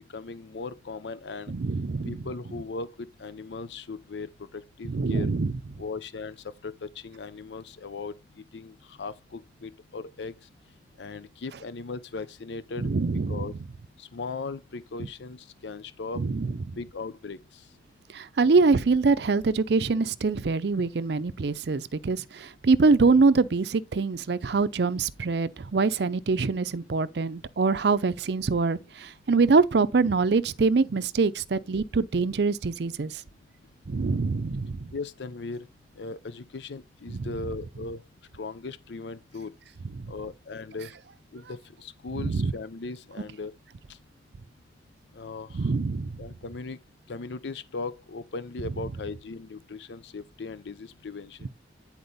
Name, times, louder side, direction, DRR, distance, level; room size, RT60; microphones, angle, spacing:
voice 1, 0.0-1.5 2.1-2.9 3.2-5.3 5.8-6.3 6.6-8.1 8.5-10.3 11.0-12.9 13.3-13.5 14.1-15.4 15.6-16.2 16.8-17.4 34.9-35.7 36.0-38.0 38.4-39.5 40.1-40.9 41.3-43.5 45.2-45.5 46.2-46.8 47.1-51.4, left 4 dB, 75° left, 0.6 m, -38 dB
voice 2, 1.5-2.2 4.8-5.5 12.8-13.5 16.2-16.5 18.1-33.2 33.9-34.9 37.1-37.3 40.0-40.1 42.1-42.5 45.5-46.2 51.4-51.5, right 4 dB, 65° right, 0.5 m, -24 dB
9.5 x 4.4 x 4.0 m
head